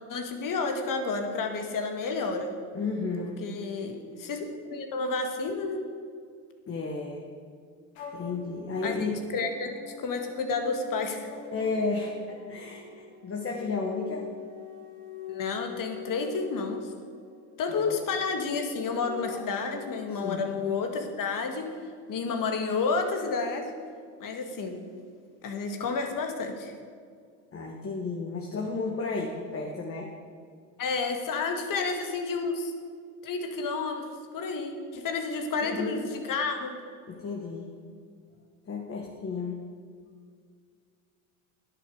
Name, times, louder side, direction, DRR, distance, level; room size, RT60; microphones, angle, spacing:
voice 1, 0.1-2.5 3.4-5.8 8.8-9.0 9.3-11.3 15.3-16.9 17.6-21.7 22.1-23.7 24.2-24.8 25.4-26.7 30.8-32.7 33.2-34.1 34.3-36.0 36.3-36.8, left 4 dB, 55° left, 4 dB, 2.0 m, -30 dB
voice 2, 2.7-3.4 6.7-7.3 8.1-9.2 11.5-14.3 17.8-17.9 20.1-20.5 27.5-30.1 35.6-36.0 37.1-37.7 38.6-39.6, left 3 dB, 35° left, 0 dB, 1.7 m, -33 dB
sound 1, 7.9-20.3, left 6 dB, 85° left, 2.2 m, -44 dB
10.5 x 8.6 x 6.6 m, 2.1 s
supercardioid pair, 75°, 40 cm